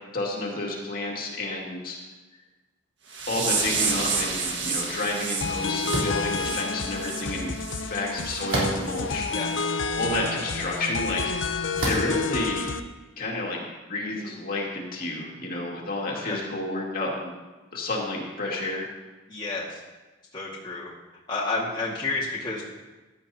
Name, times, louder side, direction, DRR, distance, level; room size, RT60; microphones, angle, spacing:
voice 1, 0.1-2.0 3.3-9.6 10.0-11.3 11.9-12.7 13.2-17.3 17.7-18.9, left 2 dB, 50° left, -2 dB, 2.2 m, -30 dB
sound 1, 3.1-7.8 8.2-8.4 8.9-9.0 9.5-9.6 10.1-10.2, right 4 dB, 70° right, 1.7 m, -30 dB
sound 2, 5.4-12.8, left 4 dB, 90° left, 0.7 m, -30 dB
sound 3, 5.9-6.2 8.5-9.0 9.7-9.8 11.8-12.2, right 1 dB, 90° right, 3.7 m, -28 dB
voice 2, 19.3-19.8 20.3-20.9 21.3-22.6, left 3 dB, 25° left, -6 dB, 2.0 m, -30 dB
15.5 x 11.0 x 2.9 m, 1.2 s
head